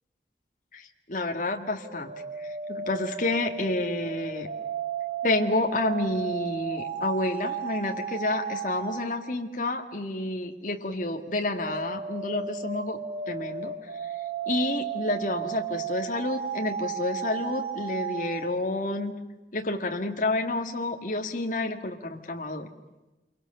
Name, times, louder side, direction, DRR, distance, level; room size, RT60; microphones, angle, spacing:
voice 1, 0.7-2.1 2.4-4.5 5.2-13.0 13.3-13.7 14.0-14.1 14.5-19.1 19.5-22.7, left 2 dB, 45° left, 3 dB, 1.9 m, -29 dB
sound 1, 1.8-9.1 11.2-18.5, right 7 dB, 65° right, 3.7 m, -34 dB
28.0 x 24.0 x 6.7 m, 1.1 s
head